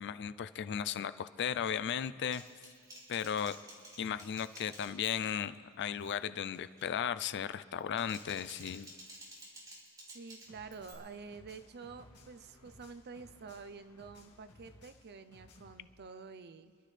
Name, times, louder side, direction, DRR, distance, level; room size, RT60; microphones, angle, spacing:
voice 1, 0.0-2.4 3.1-3.6 4.0-8.9, left 8 dB, 50° left, 14 dB, 0.4 m, -36 dB
Typing, 2.3-5.5 5.8-6.2 6.5-6.9 7.7-10.9, equal, 15° right, 2.7 m, -53 dB
voice 2, 10.1-16.9, right 4 dB, 45° right, 11 dB, 0.6 m, -49 dB
sound 1, 10.5-15.8, left 2 dB, 85° left, 1.8 m, -60 dB
27.0 x 12.0 x 3.3 m, 2.2 s
head